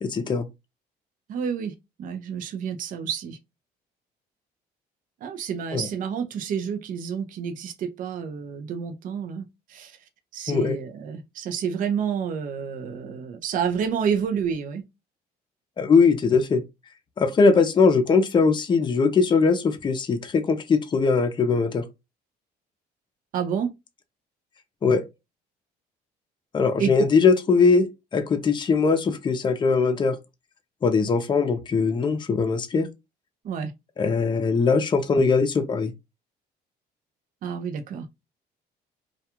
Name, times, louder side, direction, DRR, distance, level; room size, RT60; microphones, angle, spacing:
voice 1, 0.0-0.5 5.7-5.9 10.5-10.8 15.8-16.6 17.2-21.8 24.8-25.0 26.5-27.9 28.1-30.2 30.8-32.9 34.0-35.9, left 4 dB, 25° left, 0.5 m, -21 dB
voice 2, 1.3-1.7 2.0-3.4 5.2-10.0 10.3-14.8 23.3-23.7 26.8-26.9 33.4-33.7 37.4-38.1, right 7 dB, 55° right, 0.5 m, -29 dB
2.3 x 2.3 x 2.8 m
cardioid pair, 110°, 17 cm